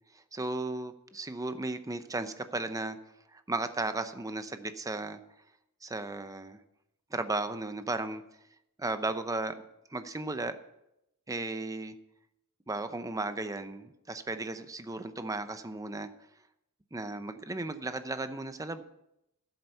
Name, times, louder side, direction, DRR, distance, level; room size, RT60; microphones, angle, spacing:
voice 1, 0.3-3.0 3.3-5.2 5.8-6.6 7.1-8.2 8.8-9.5 9.9-10.6 11.3-12.0 12.7-16.1 16.9-18.8, right 2 dB, 15° right, 10 dB, 0.7 m, -35 dB
13.5 x 7.9 x 5.5 m, 0.84 s
head